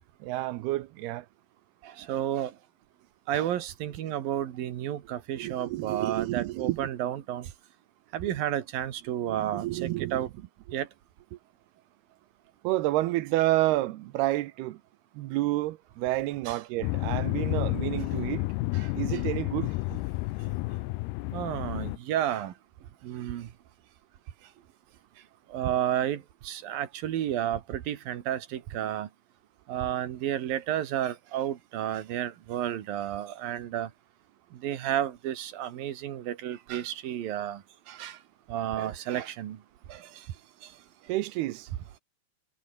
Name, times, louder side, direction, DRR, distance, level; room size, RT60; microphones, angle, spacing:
voice 1, 0.2-1.3 5.3-6.9 9.3-10.3 12.6-14.8 15.1-18.5 18.9-19.7 41.1-41.7, right 17 dB, 80° right, 2.8 m, -29 dB
voice 2, 2.0-2.5 3.3-7.5 8.1-10.3 10.7-10.9 16.5-16.6 18.7-18.9 21.3-22.5 23.0-23.5 25.5-29.1 29.7-33.9 34.6-37.6 37.9-38.2 38.5-39.6 39.9-40.0, right 11 dB, 65° right, 3.2 m, -31 dB
sound 1, 16.8-22.0, left 21 dB, 90° left, 2.6 m, -30 dB
omnidirectional pair, 4.6 m